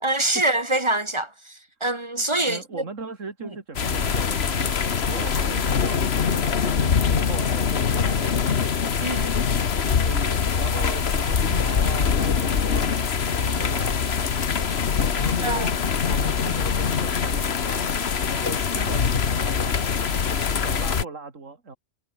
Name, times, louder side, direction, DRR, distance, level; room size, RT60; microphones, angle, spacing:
voice 1, 0.0-2.8 3.4-3.5 9.0-9.3 15.4-15.7, right 2 dB, 20° right, 1.7 m, -25 dB
voice 2, 2.5-4.7 5.1-8.5 10.0-14.4 15.2-17.8 18.3-20.0 20.6-21.8, right 4 dB, 75° right, 3.2 m, -37 dB
sound 1, 3.8-21.0, left 6 dB, 55° left, 1.5 m, -23 dB
omnidirectional pair, 1.3 m